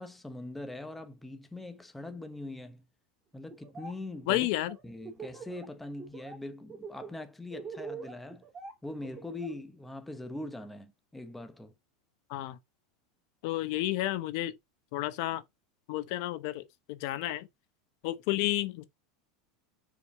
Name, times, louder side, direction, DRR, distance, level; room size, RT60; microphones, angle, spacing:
voice 1, 0.0-2.8 3.3-4.5 4.8-8.4 8.8-11.7, left 2 dB, 5° left, 0.8 m, -42 dB
Laughter, 3.5-3.9 4.2-5.6 6.0-6.4 6.7-9.5, right 5 dB, 15° right, 2.2 m, -44 dB
voice 2, 4.3-4.7 12.3-12.6 13.4-14.5 14.9-15.4 15.9-16.6 16.9-17.5 18.0-18.8, left 16 dB, 55° left, 0.8 m, -31 dB
5.1 x 5.0 x 5.3 m
supercardioid pair, 160°, 3 cm